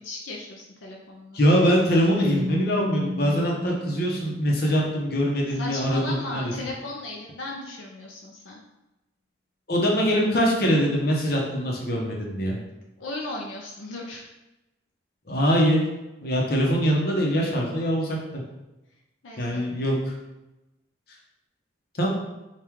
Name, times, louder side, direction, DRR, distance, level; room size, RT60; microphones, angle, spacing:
voice 1, 0.0-1.4 5.5-8.6 13.0-14.3 19.2-19.7, left 2 dB, 80° left, -1 dB, 0.6 m, -36 dB
voice 2, 1.3-6.5 9.7-12.6 15.3-15.8 16.2-18.4 19.4-20.1 21.9-22.1, equal, 50° left, -2 dB, 0.8 m, -23 dB
Keyboard (musical), 2.0-4.8, left 2 dB, 25° right, 0.3 m, -31 dB
4.5 x 2.4 x 3.5 m, 1.0 s
head